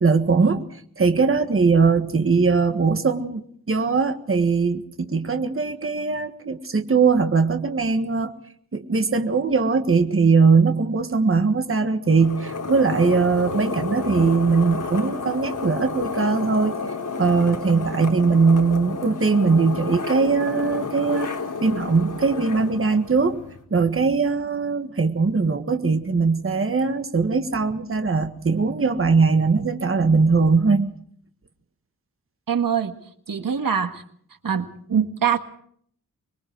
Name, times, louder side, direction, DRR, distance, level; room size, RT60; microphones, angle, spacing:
voice 1, 0.0-8.3 8.7-16.8 17.2-21.3 21.6-23.4 23.7-30.9, right 4 dB, 35° right, 7 dB, 1.6 m, -20 dB
sound 1, 12.1-23.6, left 4 dB, 55° left, 3.7 m, -31 dB
voice 2, 32.5-32.9 33.3-34.0 34.4-35.4, right 7 dB, 65° right, 8 dB, 1.7 m, -23 dB
25.5 x 22.0 x 4.6 m, 0.62 s
wide cardioid pair, 115°, 36 cm